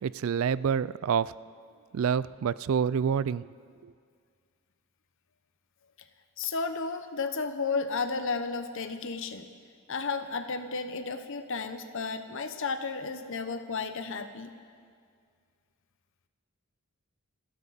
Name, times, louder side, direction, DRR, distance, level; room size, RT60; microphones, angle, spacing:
voice 1, 0.0-1.3 1.9-3.5 3.8-3.9, right 7 dB, 65° right, 19 dB, 0.3 m, -27 dB
voice 2, 6.4-9.5 9.9-14.5, left 4 dB, 60° left, 9 dB, 1.0 m, -33 dB
28.0 x 12.5 x 4.2 m, 2.1 s
head